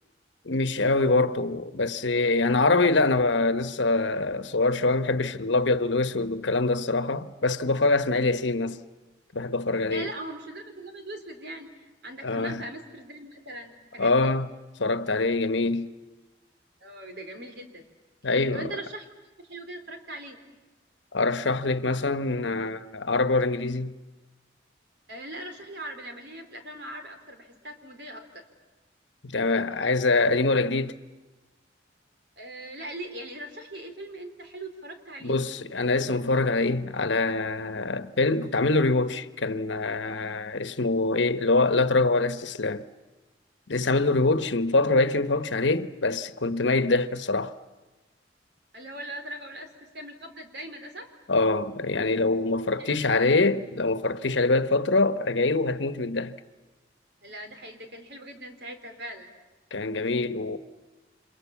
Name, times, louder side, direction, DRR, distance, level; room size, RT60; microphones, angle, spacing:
voice 1, 0.4-8.8 9.3-10.1 12.2-12.6 14.0-14.5 14.8-15.9 18.2-18.7 21.1-23.9 29.2-31.0 35.2-42.8 43.7-47.5 51.3-56.3 59.7-60.6, left 3 dB, 80° left, 1.1 m, -24 dB
voice 2, 9.9-11.7 12.0-14.3 16.8-17.8 18.5-19.1 19.4-20.4 25.1-28.2 32.4-35.4 48.7-49.7 49.9-51.1 52.7-53.3 57.2-59.3, right 1 dB, 65° right, 3.9 m, -40 dB
30.0 x 27.0 x 7.3 m
head